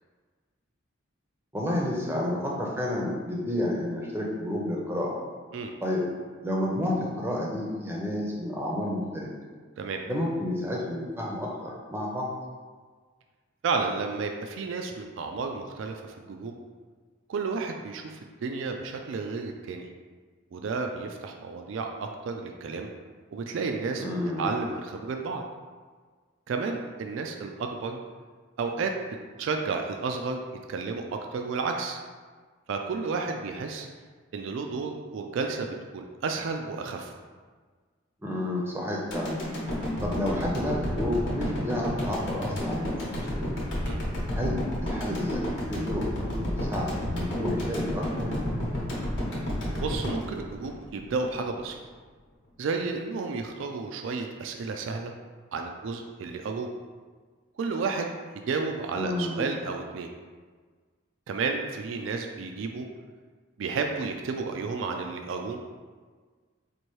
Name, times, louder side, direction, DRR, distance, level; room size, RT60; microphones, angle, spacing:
voice 1, 1.5-5.2 5.8-6.0 6.4-9.3 10.1-12.3 24.0-24.5 38.2-39.4 40.0-43.5 44.4-48.3 58.9-59.5, left 1 dB, 10° right, -3 dB, 0.6 m, -30 dB
voice 2, 13.6-16.5 17.3-19.9 20.5-22.9 23.3-24.0 24.4-25.4 26.5-28.0 28.6-28.9 29.4-30.4 30.7-32.0 32.7-33.9 34.3-37.1 43.9-44.0 49.8-51.8 52.6-55.1 55.5-56.7 57.6-60.1 61.3-62.9 63.6-65.6, right 4 dB, 65° right, 3 dB, 0.3 m, -32 dB
sound 1, 39.1-51.3 51.7-51.8, left 1 dB, 60° left, 0.9 m, -31 dB
4.4 x 2.6 x 3.0 m, 1.5 s
head